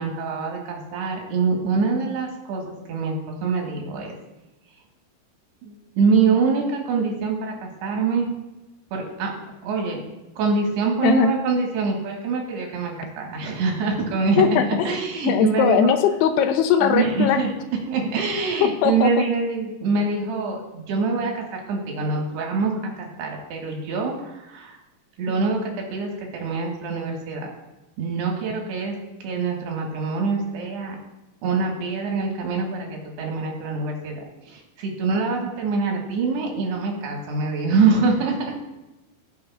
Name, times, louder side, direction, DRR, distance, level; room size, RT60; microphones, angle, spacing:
voice 1, 0.0-3.2 3.4-4.2 5.6-8.3 8.9-9.3 9.6-10.0 10.4-15.9 16.8-17.5 17.9-24.8 25.2-27.5 28.0-29.0 29.2-31.0 31.4-38.5, right 4 dB, 80° right, 0 dB, 3.6 m, -25 dB
voice 2, 14.4-15.0 15.2-17.4 18.6-19.1, left 7 dB, 90° left, 7 dB, 2.7 m, -19 dB
18.5 x 6.3 x 2.4 m, 1.0 s
omnidirectional pair, 4.7 m